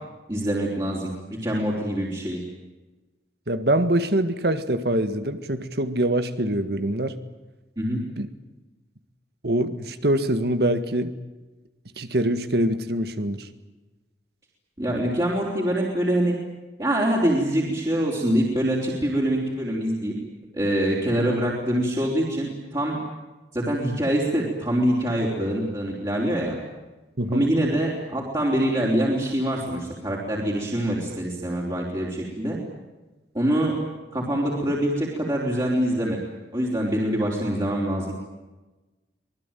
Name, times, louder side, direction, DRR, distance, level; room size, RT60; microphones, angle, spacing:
voice 1, 0.3-2.4 7.8-8.0 14.8-16.4 16.8-20.1 20.5-23.0 23.5-26.6 27.3-32.6 33.3-33.8 34.1-36.2 36.5-38.1, right 1 dB, 20° right, -4 dB, 4.3 m, -24 dB
voice 2, 3.5-7.2 8.2-8.3 9.4-11.1 12.0-13.5 27.2-27.5, right 1 dB, 60° right, 11 dB, 1.8 m, -24 dB
26.0 x 20.5 x 9.2 m, 1.1 s
head